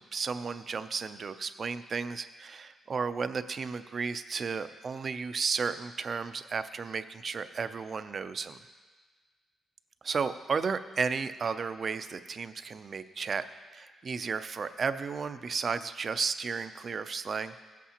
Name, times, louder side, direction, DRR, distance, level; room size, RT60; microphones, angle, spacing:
voice 1, 0.0-8.6 10.0-13.4 13.7-17.5, right 5 dB, 40° right, 11 dB, 0.4 m, -33 dB
16.5 x 8.3 x 2.9 m, 1.4 s
cardioid pair, 125°, 0 cm